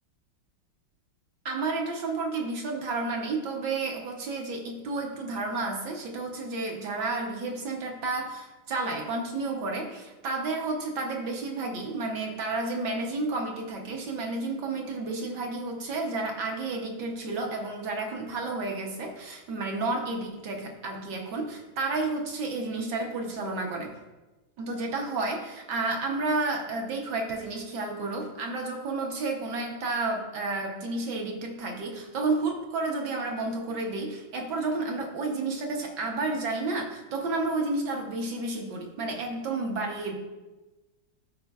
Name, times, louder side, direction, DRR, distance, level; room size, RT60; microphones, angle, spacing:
voice 1, 1.4-23.9 24.6-40.2, right 3 dB, 65° right, 1 dB, 1.4 m, -31 dB
13.0 x 4.4 x 2.4 m, 1.1 s
omnidirectional pair, 2.3 m